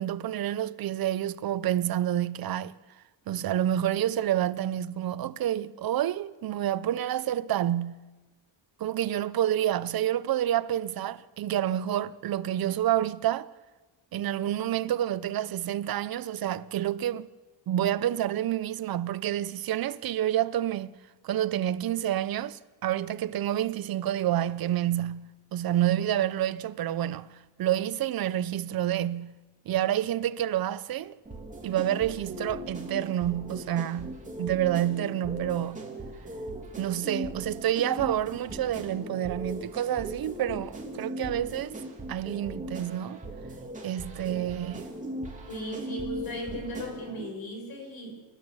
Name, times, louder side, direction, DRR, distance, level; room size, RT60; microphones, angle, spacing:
voice 1, 0.0-2.8 3.3-8.0 8.8-13.5 14.1-17.3 17.7-20.9 21.2-29.4 29.7-31.2 31.6-35.8 36.8-41.8 42.1-43.2 43.8-44.8, right 12 dB, 45° right, 0.8 m, -28 dB
sound 1, 31.2-47.2, right 1 dB, 15° right, 3.2 m, -39 dB
voice 2, 45.5-48.2, equal, 45° left, 6.3 m, -36 dB
29.0 x 12.5 x 7.2 m
cardioid pair, 140°, 49 cm